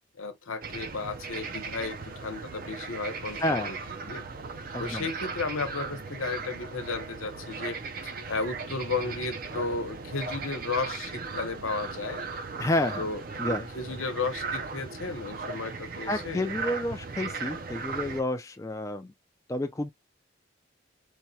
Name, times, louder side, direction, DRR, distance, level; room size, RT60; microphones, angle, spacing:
voice 1, 0.2-3.8 4.1-4.2 4.8-12.2 13.0-16.5, left 4 dB, 85° left, 0.9 m, -34 dB
sound 1, 0.6-18.2, right 4 dB, 45° right, 0.5 m, -37 dB
voice 2, 3.4-3.7 4.7-5.1 12.6-13.1 13.4-13.7 16.1-19.1 19.5-19.9, left 1 dB, 15° left, 0.3 m, -30 dB
4.6 x 2.2 x 2.7 m
head